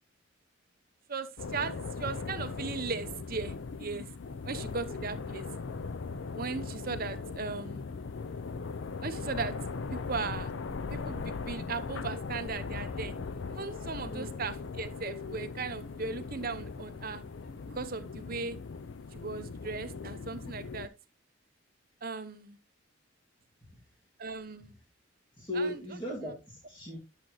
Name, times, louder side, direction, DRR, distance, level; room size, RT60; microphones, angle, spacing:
voice 1, 1.1-3.5 3.8-4.1 4.4-5.4 6.3-7.8 9.0-9.5 9.9-10.5 10.9-13.1 13.5-17.2 17.7-18.6 19.1-20.9 22.0-22.6 24.2-24.7 25.6-25.8, right 4 dB, 45° right, 0.9 m, -37 dB
sound 1, 1.4-20.9, left 4 dB, 65° left, 0.5 m, -39 dB
voice 2, 25.4-27.0, left 1 dB, 25° left, 2.4 m, -36 dB
10.5 x 7.4 x 3.1 m
head